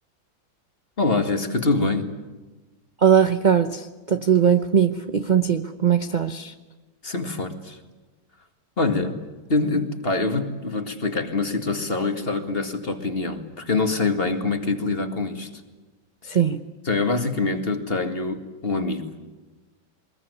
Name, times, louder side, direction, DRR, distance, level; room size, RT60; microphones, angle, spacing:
voice 1, 1.0-2.1 7.0-7.8 8.8-9.2 9.5-15.5 16.3-16.4 16.8-19.1, left 3 dB, 30° left, 6 dB, 2.1 m, -25 dB
voice 2, 3.0-6.5 16.3-16.6, right 8 dB, 45° right, 8 dB, 0.6 m, -20 dB
23.5 x 21.0 x 9.6 m, 1.2 s
omnidirectional pair, 2.0 m